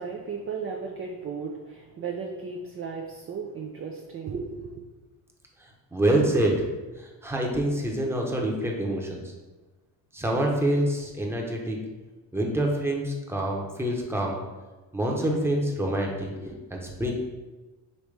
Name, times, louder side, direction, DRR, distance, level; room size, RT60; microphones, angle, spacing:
voice 1, 0.0-4.8, right 5 dB, 35° right, 1 dB, 0.5 m, -35 dB
voice 2, 5.9-6.6 7.0-9.2 10.1-11.8 12.3-14.4 14.9-17.1, right 1 dB, 5° right, -1 dB, 0.9 m, -26 dB
5.3 x 3.0 x 3.3 m, 1.2 s
cardioid pair, 90°, 41 cm